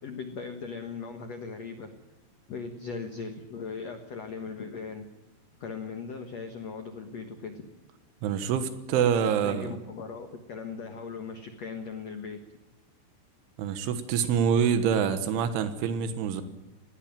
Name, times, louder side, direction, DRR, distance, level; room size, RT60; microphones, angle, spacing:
voice 1, 0.0-1.9 2.5-5.1 5.6-7.6 8.9-12.4, left 5 dB, 80° left, 6 dB, 1.5 m, -38 dB
voice 2, 8.2-9.7 13.6-16.4, right 7 dB, 85° right, 10 dB, 3.7 m, -26 dB
20.0 x 16.0 x 8.9 m, 1.0 s
omnidirectional pair, 5.4 m